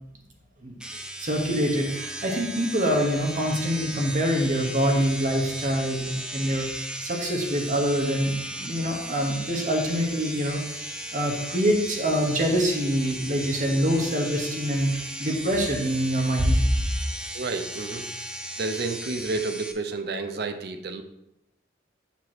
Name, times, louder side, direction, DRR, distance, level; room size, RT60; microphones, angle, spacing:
sound 1, 0.8-19.7, right 1 dB, 5° right, 0.5 m, -36 dB
voice 1, 1.2-10.8 11.1-16.8, equal, 45° right, 1 dB, 1.2 m, -25 dB
voice 2, 17.3-18.1 18.6-21.0, right 3 dB, 60° right, 7 dB, 0.6 m, -30 dB
7.2 x 3.0 x 6.0 m, 0.85 s
head